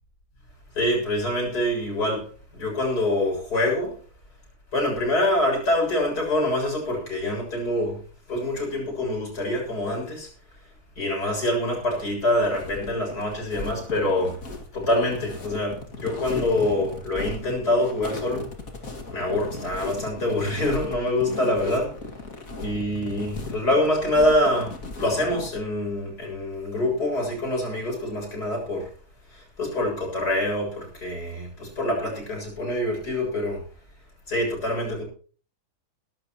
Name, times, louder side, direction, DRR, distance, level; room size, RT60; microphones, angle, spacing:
voice 1, 0.7-4.0 4.7-8.0 8.3-10.3 11.0-14.4 14.7-18.5 19.1-21.9 22.6-28.9 29.3-33.6 34.3-35.0, left 1 dB, 80° left, 7.5 m, -25 dB
sound 1, 12.4-25.6, left 2 dB, 60° left, 2.7 m, -37 dB
22.5 x 12.5 x 3.0 m
omnidirectional pair, 1.7 m